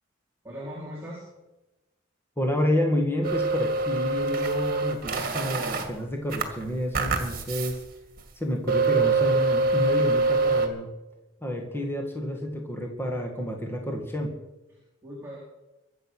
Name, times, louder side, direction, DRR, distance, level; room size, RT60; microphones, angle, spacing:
voice 1, 0.4-1.3 14.7-15.4, equal, 10° right, -7 dB, 4.0 m, -39 dB
voice 2, 2.4-7.8 8.4-10.9 11.4-14.3, left 1 dB, 10° left, 1 dB, 2.1 m, -29 dB
sound 1, 3.2-5.9 6.3-7.8 8.2-8.3 8.7-10.7, right 3 dB, 45° right, 2.1 m, -25 dB
23.5 x 8.1 x 6.4 m, 1.0 s
head